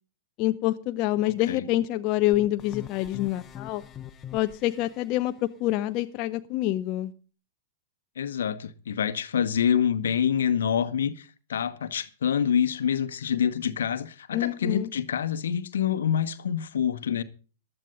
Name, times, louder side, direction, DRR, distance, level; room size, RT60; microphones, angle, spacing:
voice 1, 0.4-3.8 4.3-7.1 14.3-14.9, left 15 dB, 40° left, 0.7 m, -26 dB
sound 1, 2.3-5.1, left 10 dB, 25° left, 1.1 m, -42 dB
voice 2, 8.2-17.2, left 8 dB, 70° left, 1.1 m, -26 dB
15.0 x 12.0 x 3.9 m
figure-of-eight pair, 105°, 0 cm